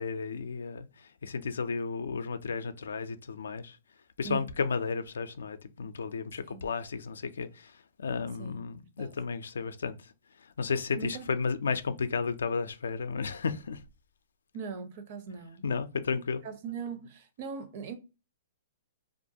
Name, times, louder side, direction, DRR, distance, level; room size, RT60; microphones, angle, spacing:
voice 1, 0.0-3.8 4.2-10.1 10.4-13.8 15.6-16.4, left 5 dB, 90° left, 0.3 m, -33 dB
voice 2, 8.4-9.1 10.9-11.3 14.5-15.6 16.4-17.9, right 6 dB, 45° right, 0.5 m, -40 dB
2.4 x 2.2 x 2.7 m
hypercardioid pair, 150°, 0 cm